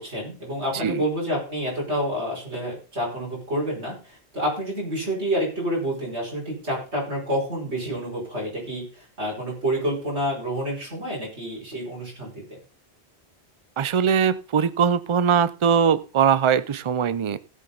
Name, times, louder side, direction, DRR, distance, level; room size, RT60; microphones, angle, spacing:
voice 1, 0.0-12.6, equal, 80° right, -4 dB, 5.5 m, -28 dB
voice 2, 13.8-17.4, right 7 dB, 40° right, 16 dB, 0.4 m, -21 dB
16.5 x 7.1 x 3.9 m, 0.34 s
omnidirectional pair, 1.1 m